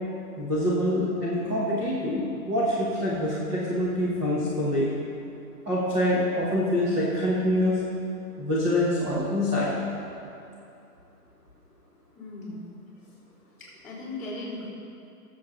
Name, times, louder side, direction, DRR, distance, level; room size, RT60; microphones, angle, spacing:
voice 1, 0.4-4.9 5.6-7.8 8.4-9.7, left 1 dB, 10° right, -8 dB, 1.0 m, -25 dB
voice 2, 12.1-12.7 13.6-14.7, left 2 dB, 5° left, -12 dB, 3.1 m, -37 dB
18.0 x 7.6 x 3.9 m, 2.7 s
hypercardioid pair, 170°, 46 cm